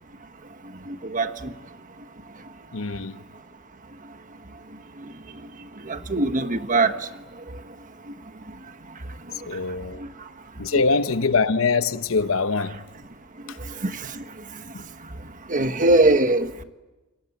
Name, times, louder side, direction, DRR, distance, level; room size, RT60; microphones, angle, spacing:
voice 1, 0.9-1.5 5.0-5.1 5.8-7.1 8.1-8.2 9.3-9.6 10.0-10.1 10.7-10.8 13.4-14.2 15.5-16.6, right 2 dB, 40° right, 1.3 m, -23 dB
voice 2, 2.7-3.2 9.4-10.0 10.6-12.8 13.5-13.6 14.7-14.8, left 4 dB, 75° left, 0.9 m, -23 dB
29.0 x 22.5 x 8.5 m
head